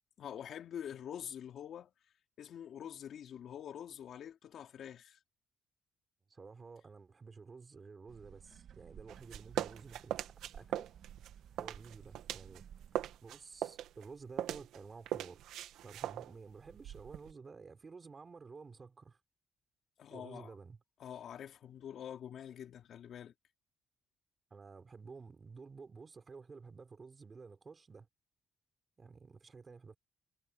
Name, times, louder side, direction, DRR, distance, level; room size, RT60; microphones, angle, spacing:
voice 1, 0.2-1.9 2.4-5.2 20.0-20.5 21.0-23.3, left 9 dB, 65° left, 3.0 m, -46 dB
voice 2, 6.3-10.9 11.5-12.7 12.9-15.4 15.8-19.2 20.1-20.8 24.5-28.1 29.0-30.0, right 4 dB, 35° right, 4.0 m, -52 dB
sound 1, 8.1-13.2, right 9 dB, 65° right, 2.1 m, -55 dB
sound 2, 9.1-12.6 12.9-17.3, right 12 dB, 85° right, 1.9 m, -41 dB
cardioid pair, 90°, 0 cm